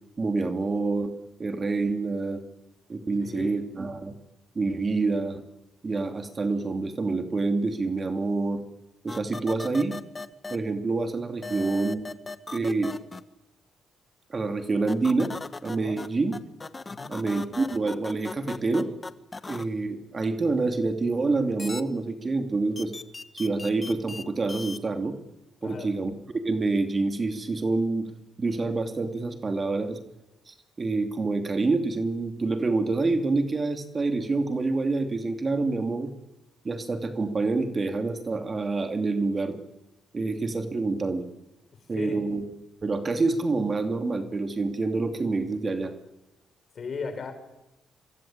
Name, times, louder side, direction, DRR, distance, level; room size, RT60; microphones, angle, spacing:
voice 1, 0.2-1.1 1.4-2.4 2.9-4.1 4.5-5.4 5.8-8.6 9.0-10.0 10.5-12.0 12.5-13.0 14.3-15.3 15.6-16.3 17.1-18.9 19.5-22.9 23.3-25.1 25.6-26.1 26.4-28.1 28.4-30.0 30.5-36.1 36.6-39.6 40.1-41.2 41.9-42.4 42.8-45.9, right 3 dB, 30° right, 6 dB, 2.8 m, -27 dB
voice 2, 3.2-3.6 15.7-16.0 16.9-17.2 25.6-25.9 42.0-42.2 46.7-47.3, left 5 dB, 50° left, 7 dB, 5.8 m, -36 dB
sound 1, 9.1-10.6 11.4-13.2 14.9-16.1 16.3-19.6 21.6-21.8 22.8-24.2 24.5-24.8, left 3 dB, 25° left, 1.4 m, -37 dB
25.0 x 24.0 x 8.9 m, 0.94 s
cardioid pair, 90°, 0 cm